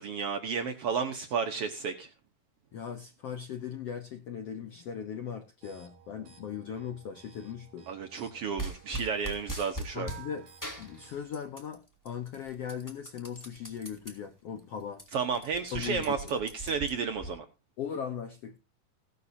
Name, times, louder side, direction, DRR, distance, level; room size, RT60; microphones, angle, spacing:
voice 1, 0.0-2.1 7.9-10.1 15.1-17.5, right 6 dB, 85° right, 1.3 m, -32 dB
voice 2, 2.7-7.9 9.9-10.5 10.8-15.0 15.7-16.1 17.8-18.6, left 8 dB, 75° left, 1.4 m, -38 dB
sound 1, 5.6-11.2, right 9 dB, 60° right, 4.7 m, -55 dB
sound 2, 8.6-10.2 10.6-11.7 12.1-14.1 14.6-14.7 14.9-17.3, right 2 dB, 5° left, 2.2 m, -40 dB
16.5 x 11.5 x 2.8 m
omnidirectional pair, 4.3 m